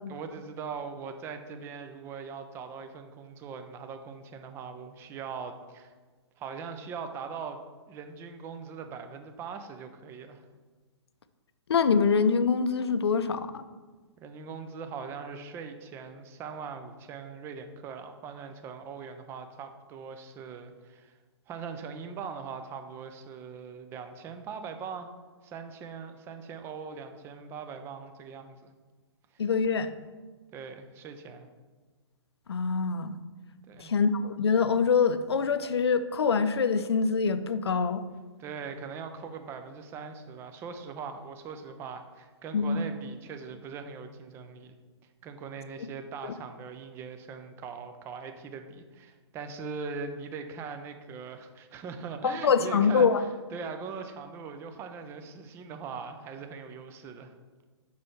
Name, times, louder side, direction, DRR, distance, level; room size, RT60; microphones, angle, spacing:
voice 1, 0.1-5.9 6.4-7.6 7.9-10.4 14.2-21.2 21.5-25.1 25.4-28.7 29.3-29.4 30.5-31.5 33.7-33.9 38.4-44.7 45.2-53.1 53.5-57.3, right 5 dB, 15° right, 7 dB, 0.5 m, -41 dB
voice 2, 11.7-13.6 29.4-29.9 32.5-33.1 33.8-38.0 42.5-42.8 52.2-53.2, left 5 dB, 60° left, 11 dB, 0.5 m, -25 dB
6.2 x 5.5 x 4.5 m, 1.4 s
figure-of-eight pair, 120°, 15 cm